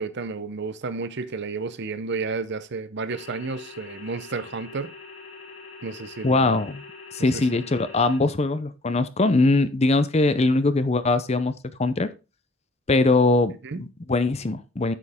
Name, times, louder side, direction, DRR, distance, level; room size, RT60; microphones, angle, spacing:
voice 1, 0.0-4.9 5.8-6.6 7.2-7.5 13.6-13.8, right 4 dB, 55° right, 0.7 m, -32 dB
sound 1, 3.1-8.2, left 4 dB, 60° left, 3.3 m, -43 dB
voice 2, 6.2-6.8 7.1-11.5 11.8-12.1 12.9-14.9, left 2 dB, 30° left, 0.6 m, -21 dB
9.1 x 6.6 x 3.6 m
head